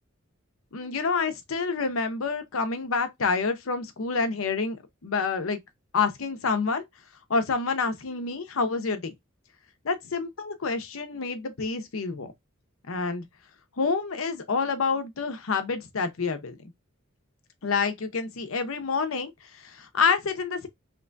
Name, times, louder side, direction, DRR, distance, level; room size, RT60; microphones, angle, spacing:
voice 1, 0.7-5.6 5.9-6.9 7.3-9.1 9.8-12.3 12.9-13.3 13.8-16.6 17.6-20.7, left 4 dB, 75° left, 0.7 m, -28 dB
2.9 x 2.6 x 3.3 m
head